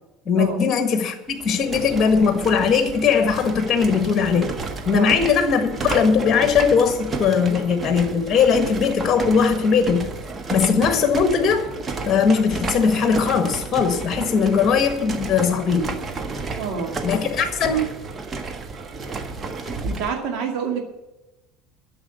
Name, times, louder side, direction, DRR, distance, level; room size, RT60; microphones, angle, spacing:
voice 1, 0.2-4.5 4.8-10.1 10.5-11.7 12.0-15.9 17.0-17.8, left 6 dB, 30° left, 7 dB, 1.6 m, -19 dB
sound 1, 1.3-20.2, right 3 dB, 25° right, 1.5 m, -32 dB
voice 2, 16.6-17.0 19.8-20.8, right 6 dB, 50° right, 1 dB, 2.3 m, -27 dB
13.0 x 7.2 x 8.1 m, 1.0 s
figure-of-eight pair, 70°, 0 cm